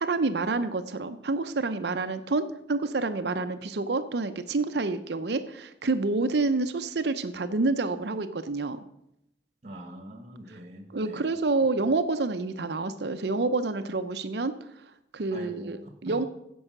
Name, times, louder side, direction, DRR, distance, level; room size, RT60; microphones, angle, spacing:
voice 1, 0.0-8.8 10.5-10.6 10.9-14.5 15.1-16.2, right 3 dB, 65° right, 10 dB, 0.6 m, -28 dB
voice 2, 9.6-11.4 15.3-16.3, right 1 dB, 40° right, 6 dB, 1.7 m, -43 dB
15.5 x 5.5 x 6.0 m, 0.81 s
head